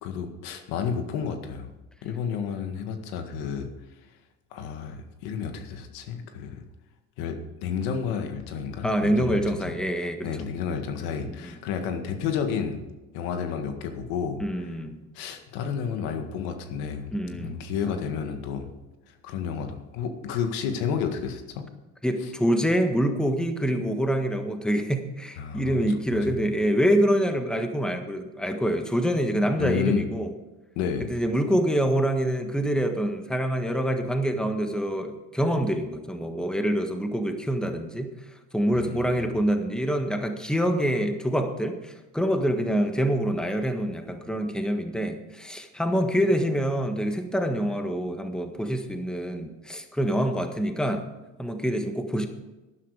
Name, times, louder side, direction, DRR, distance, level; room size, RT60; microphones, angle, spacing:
voice 1, 0.0-1.7 2.0-3.7 4.5-6.6 7.2-9.7 10.2-12.8 13.1-14.7 15.1-17.1 17.4-18.7 19.1-21.6 25.4-25.8 26.1-26.4 29.6-30.0 30.8-31.1 38.7-39.2, left 7 dB, 85° left, 6 dB, 1.9 m, -31 dB
voice 2, 8.8-10.3 11.3-11.6 14.4-15.0 17.1-17.6 22.0-30.3 31.0-38.1 38.5-51.0 51.4-52.3, equal, ahead, 6 dB, 1.5 m, -26 dB
12.0 x 11.0 x 4.9 m, 1.1 s
supercardioid pair, 100°, 35 cm